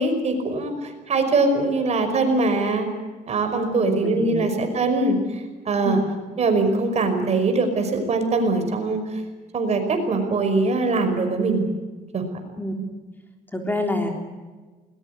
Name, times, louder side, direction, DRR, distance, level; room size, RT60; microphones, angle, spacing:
voice 1, 0.0-2.9 3.3-6.0 6.4-9.2 9.5-11.7 12.1-12.2, right 3 dB, 40° right, 6 dB, 5.4 m, -22 dB
voice 2, 3.7-4.5 5.8-6.0 12.6-12.7 13.5-14.1, left 1 dB, 10° left, 3 dB, 3.5 m, -27 dB
21.0 x 20.5 x 9.6 m, 1.3 s
cardioid pair, 110°, 17 cm